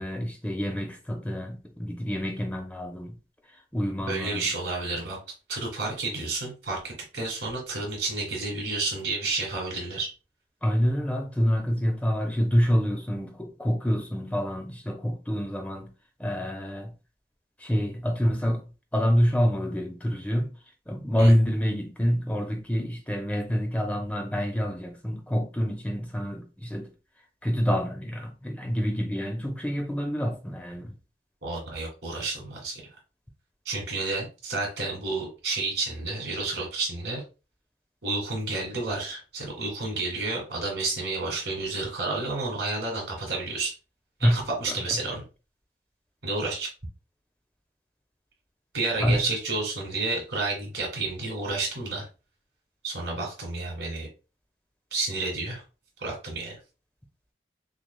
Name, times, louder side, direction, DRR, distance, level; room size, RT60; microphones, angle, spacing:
voice 1, 0.0-3.2 3.7-4.5 10.6-15.9 16.2-16.9 17.6-18.6 18.9-20.5 20.9-26.9 27.4-31.0 44.2-44.4 49.0-49.2, equal, 10° left, 0.6 m, -27 dB
voice 2, 4.1-5.2 5.5-10.1 21.2-21.3 31.4-32.8 33.7-37.2 38.0-43.7 44.2-45.2 46.2-46.7 48.7-52.1 52.8-54.1 54.9-55.6 56.0-56.6, right 3 dB, 80° right, 2.0 m, -30 dB
6.0 x 2.3 x 2.2 m
head